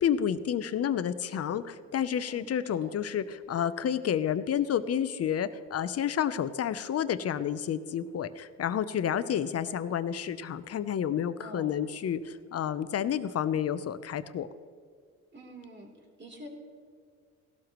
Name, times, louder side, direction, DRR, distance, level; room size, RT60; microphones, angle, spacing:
voice 1, 0.0-14.5, left 9 dB, 55° left, 13 dB, 0.8 m, -30 dB
voice 2, 2.1-2.9 11.4-11.7 15.3-15.9 16.2-16.5, right 1 dB, 35° right, 0 dB, 3.5 m, -47 dB
17.0 x 12.5 x 3.1 m, 2.1 s
cardioid pair, 90°, 30 cm